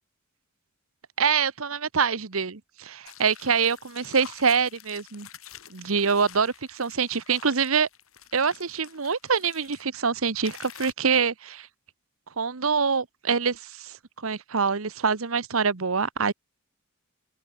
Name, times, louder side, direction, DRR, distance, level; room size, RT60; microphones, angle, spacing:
voice 1, 1.2-5.3 5.7-7.9 8.3-11.7 12.4-14.0 14.2-16.3, right 5 dB, 80° right, 1.1 m, -25 dB
sound 1, 3.0-9.8 10.4-10.9, left 9 dB, 85° left, 6.9 m, -48 dB
open air
head